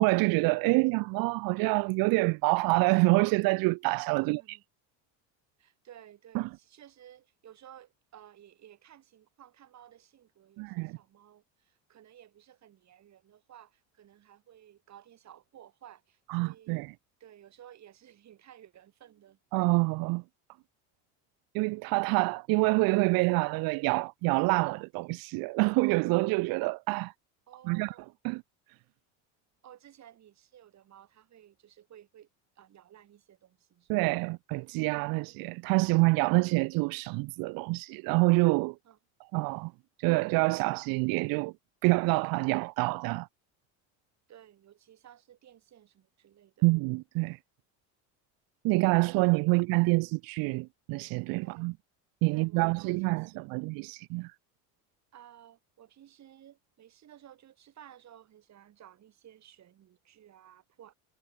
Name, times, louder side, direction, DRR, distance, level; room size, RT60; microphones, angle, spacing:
voice 1, 0.0-4.6 6.3-6.5 10.6-11.0 16.3-16.9 19.5-20.2 21.5-27.1 27.7-27.9 28.2-28.4 33.9-38.8 39.3-39.7 40.0-41.5 41.8-43.3 46.6-47.4 48.6-51.7 52.2-54.3, right 26 dB, 65° right, 0.6 m, -27 dB
voice 2, 4.2-4.6 5.6-16.9 17.2-19.4 27.5-28.2 29.6-32.3 32.6-34.0 38.8-39.0 44.3-46.7 49.5-49.7 51.4-51.8 52.3-53.8 55.1-60.9, right 11 dB, 45° right, 4.1 m, -55 dB
cardioid pair, 110°, 38 cm